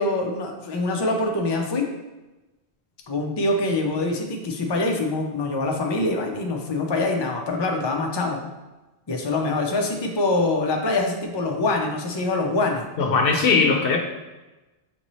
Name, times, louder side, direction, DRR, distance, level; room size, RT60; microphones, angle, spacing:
voice 1, 0.0-1.9 3.1-8.4 9.1-12.8, left 2 dB, 40° left, 1 dB, 0.4 m, -24 dB
voice 2, 13.0-14.0, left 4 dB, 65° left, 3 dB, 0.8 m, -19 dB
5.2 x 2.7 x 3.0 m, 1.1 s
omnidirectional pair, 1.1 m